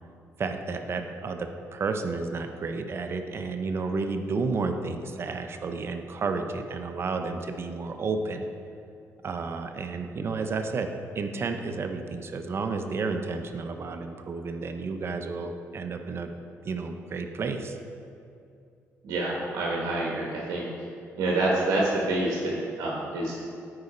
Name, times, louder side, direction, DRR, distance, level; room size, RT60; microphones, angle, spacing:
voice 1, 0.4-8.5 9.2-16.3 16.7-17.8, right 4 dB, 45° right, 6 dB, 0.6 m, -31 dB
voice 2, 19.0-20.6 21.2-23.4, right 2 dB, 80° right, -3 dB, 1.2 m, -27 dB
9.6 x 4.8 x 4.2 m, 2.5 s
cardioid pair, 85°, 6 cm